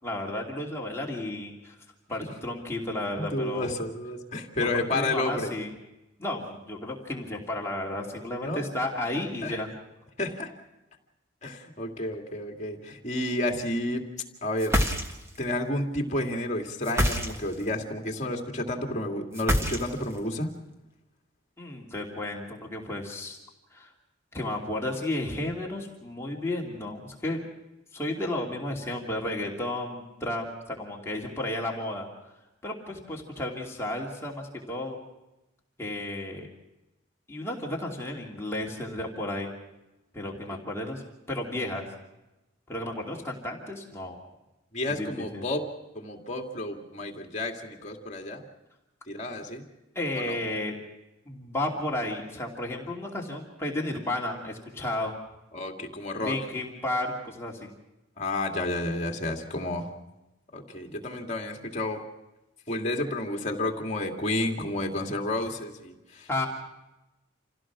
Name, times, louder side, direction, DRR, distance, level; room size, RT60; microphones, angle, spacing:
voice 1, 0.0-1.8 2.1-3.7 4.6-5.7 6.2-9.7 21.6-23.4 23.7-23.9 24.3-27.4 27.9-32.1 32.6-35.0 35.8-36.5 37.3-39.5 40.1-41.9 42.7-44.2 45.0-45.4 49.9-50.7 51.3-55.2 56.2-57.7 66.3-66.5, left 1 dB, 15° left, -2 dB, 2.8 m, -33 dB
voice 2, 3.2-5.5 8.4-8.6 9.4-9.6 10.2-10.5 11.4-14.0 14.4-15.0 15.4-20.5 40.5-40.6 44.7-45.7 45.9-48.4 49.1-49.6 50.1-50.4 55.5-56.4 58.2-59.9 60.5-62.0 62.7-66.5, left 1 dB, 35° left, 3 dB, 2.3 m, -31 dB
sound 1, 14.6-15.4 16.8-17.7 19.3-20.2, equal, 15° right, 1.4 m, -26 dB
27.5 x 16.5 x 6.1 m, 0.98 s
head